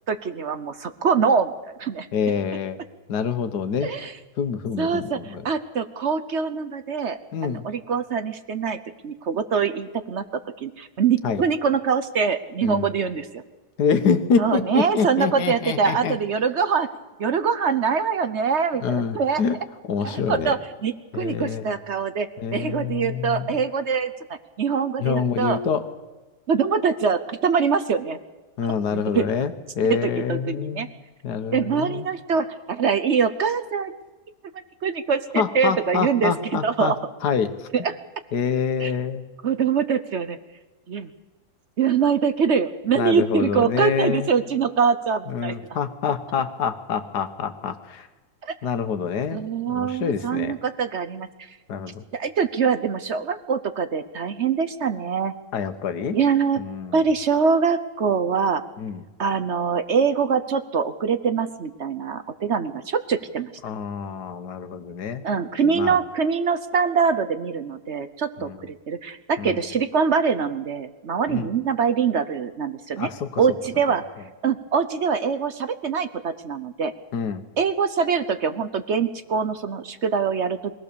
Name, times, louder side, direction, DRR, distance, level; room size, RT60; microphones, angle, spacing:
voice 1, 0.1-1.5 1.8-2.1 3.8-4.1 4.8-8.8 9.0-10.3 10.6-13.4 14.4-16.9 17.2-19.4 20.0-24.1 24.6-25.6 26.5-28.2 28.9-29.3 29.9-30.9 31.5-33.9 34.8-37.0 37.7-37.9 38.8-38.9 39.4-40.4 40.9-41.1 41.8-45.6 48.4-48.5 49.3-51.5 52.1-55.3 56.1-56.6 56.9-58.6 59.2-63.5 65.2-73.1 73.4-74.0 74.4-76.9 77.6-80.7, right 6 dB, 55° right, 11 dB, 1.0 m, -24 dB
voice 2, 2.1-2.8 3.1-3.9 4.4-5.4 7.3-7.6 11.2-11.4 12.6-12.9 13.8-16.2 18.8-19.6 19.8-20.5 21.1-21.7 22.4-23.5 25.0-25.8 28.6-30.9 31.2-32.1 35.3-36.9 37.2-37.5 38.3-39.2 43.0-44.3 45.3-48.1 48.6-49.4 49.7-50.5 51.7-52.0 55.5-56.2 56.6-57.0 58.8-59.0 63.6-65.2 65.7-65.9 68.4-68.6 69.4-69.5 71.3-71.5 73.0-73.3 77.1-77.4, left 6 dB, 85° left, 10 dB, 1.7 m, -26 dB
22.5 x 17.0 x 6.8 m, 1.2 s
omnidirectional pair, 1.7 m